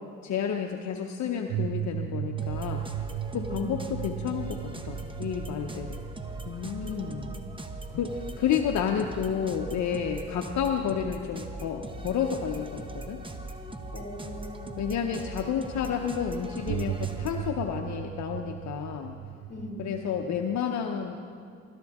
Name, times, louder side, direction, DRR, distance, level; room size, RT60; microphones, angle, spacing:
voice 1, 0.2-2.8 3.3-6.0 6.5-7.3 7.9-13.2 14.8-19.1 19.8-21.2, left 8 dB, 65° left, 3 dB, 0.8 m, -30 dB
sound 1, 1.5-10.8 11.8-11.9 16.7-20.6, right 12 dB, 65° right, 0.5 m, -37 dB
sound 2, 2.4-17.5, right 2 dB, 15° right, 1.1 m, -40 dB
voice 2, 3.3-3.8 6.8-7.2 13.9-14.9 19.5-20.0, left 1 dB, 35° left, 2 dB, 2.6 m, -40 dB
21.0 x 13.0 x 3.6 m, 2.4 s
cardioid pair, 90°, 30 cm